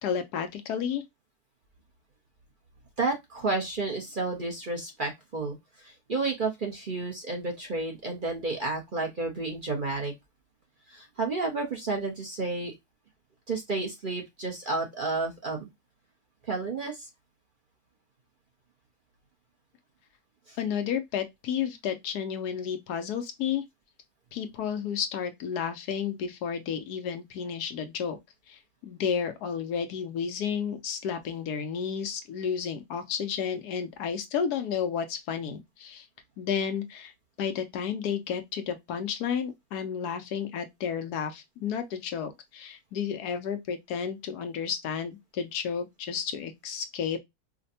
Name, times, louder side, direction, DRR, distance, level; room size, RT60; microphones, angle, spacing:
voice 1, 0.0-1.0 20.6-23.6 24.3-28.2 28.5-36.1 36.4-37.1 37.4-47.2, left 7 dB, 85° left, 1.2 m, -32 dB
voice 2, 3.0-10.1 10.9-12.7 13.5-15.6 16.4-17.1 20.5-20.6, right 3 dB, 40° right, 0.8 m, -31 dB
4.9 x 2.2 x 2.7 m
omnidirectional pair, 1.7 m